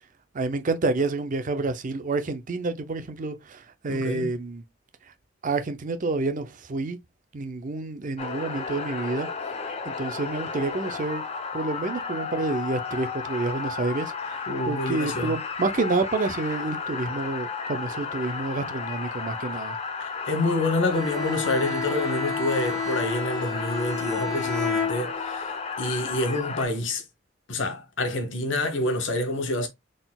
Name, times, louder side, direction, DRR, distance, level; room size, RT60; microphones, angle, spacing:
voice 1, 0.3-4.6 5.4-7.0 7.3-9.3 9.6-11.2 11.5-14.4 14.7-19.8 25.9-26.0, right 3 dB, 45° right, 0.6 m, -29 dB
voice 2, 3.9-4.3 14.5-15.4 20.0-27.0 27.5-29.7, left 2 dB, 80° left, 1.2 m, -27 dB
sound 1, 8.2-26.7, left 5 dB, 35° left, 0.7 m, -33 dB
Bowed string instrument, 20.9-25.5, left 5 dB, 5° right, 2.0 m, -31 dB
4.0 x 3.8 x 2.3 m
head